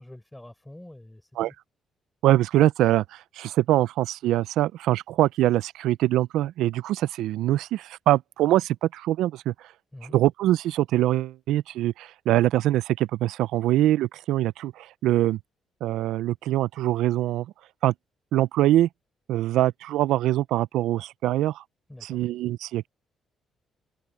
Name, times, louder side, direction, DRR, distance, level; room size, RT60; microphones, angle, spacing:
voice 1, 0.0-1.5 9.9-10.2 21.9-22.2, left 1 dB, 10° left, 4.7 m, -46 dB
voice 2, 2.2-9.7 10.1-15.4 15.8-17.5 17.8-17.9 18.3-18.9 19.3-21.6 22.0-22.9, right 14 dB, 90° right, 0.3 m, -23 dB
cardioid pair, 90°, 0 cm